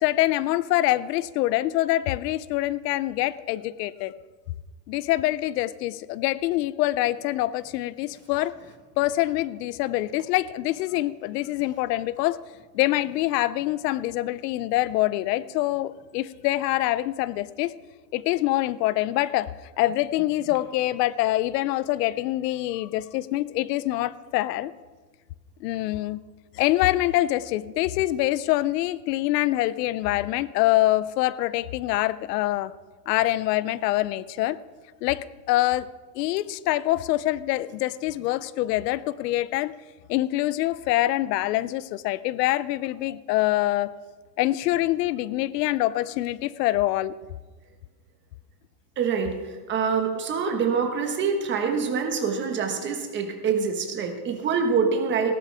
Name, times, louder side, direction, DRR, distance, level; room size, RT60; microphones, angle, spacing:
voice 1, 0.0-4.1 4.9-8.5 9.0-12.4 12.7-17.7 18.1-19.5 19.8-24.7 25.6-26.2 26.5-32.7 33.1-34.6 35.0-35.9 36.1-39.7 40.1-43.9 44.4-47.1, left 16 dB, 75° left, 18 dB, 0.6 m, -25 dB
voice 2, 49.0-49.4 49.7-55.3, right 6 dB, 25° right, 4 dB, 1.3 m, -25 dB
17.5 x 12.5 x 3.4 m, 1.4 s
supercardioid pair, 165°, 49 cm